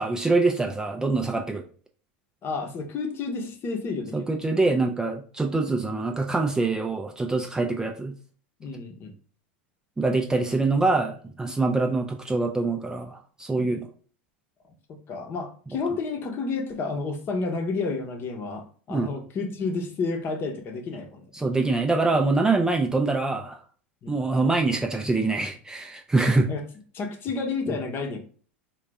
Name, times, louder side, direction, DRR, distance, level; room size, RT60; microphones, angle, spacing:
voice 1, 0.0-1.6 4.1-8.1 10.0-13.9 18.9-19.1 21.3-23.6 24.1-26.5, right 3 dB, 10° right, 3 dB, 0.5 m, -24 dB
voice 2, 2.4-4.4 8.6-9.1 13.5-13.8 14.9-21.2 24.0-24.2 26.5-26.6 26.9-28.2, left 4 dB, 40° left, 5 dB, 0.9 m, -31 dB
3.9 x 2.4 x 3.4 m, 0.43 s
hypercardioid pair, 90°, 6 cm